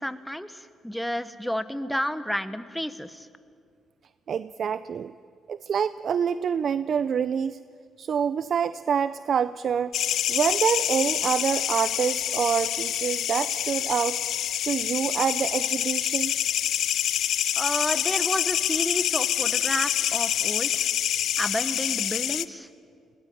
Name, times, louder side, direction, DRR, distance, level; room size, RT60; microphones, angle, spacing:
voice 1, 0.0-3.3 17.5-20.9 21.4-22.7, equal, ahead, 12 dB, 1.2 m, -31 dB
voice 2, 4.3-5.1 5.5-7.6 8.0-10.0 10.3-14.2 14.7-16.4, right 7 dB, 55° right, 15 dB, 0.5 m, -26 dB
sound 1, 9.9-22.5, left 11 dB, 75° left, 0.7 m, -26 dB
21.5 x 19.0 x 9.2 m, 2.3 s
cardioid pair, 90°, 0 cm